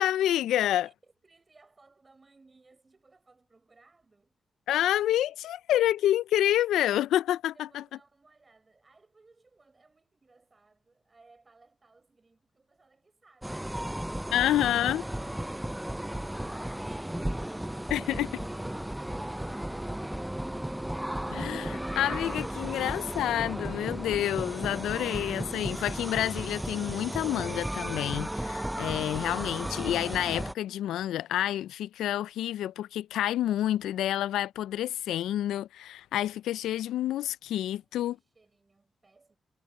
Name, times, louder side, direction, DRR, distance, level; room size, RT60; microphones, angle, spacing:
voice 1, 0.0-0.9 4.7-7.8 14.3-15.0 17.9-18.3 21.3-38.2, left 12 dB, 90° left, 0.3 m, -28 dB
voice 2, 0.8-4.4 7.5-20.8 37.7-39.4, right 3 dB, 40° right, 4.9 m, -63 dB
sound 1, 13.4-30.5, right 1 dB, 10° right, 0.4 m, -35 dB
supercardioid pair, 45°, 0 cm